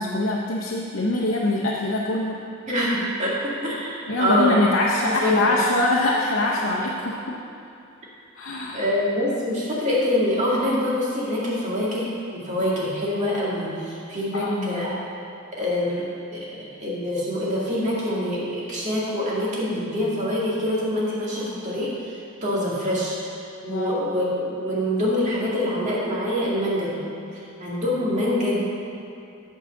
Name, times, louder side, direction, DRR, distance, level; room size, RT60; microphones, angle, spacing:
voice 1, 0.0-2.4 4.1-7.4 8.4-8.9 14.3-14.9 23.7-23.9, left 2 dB, 70° left, -3 dB, 0.8 m, -24 dB
voice 2, 2.7-3.4 3.6-4.7 5.0-5.6 6.6-6.8 8.7-14.9 15.5-22.1 22.4-26.9 27.3-28.6, left 1 dB, 35° right, -6 dB, 2.1 m, -25 dB
8.5 x 4.8 x 7.1 m, 2.6 s
head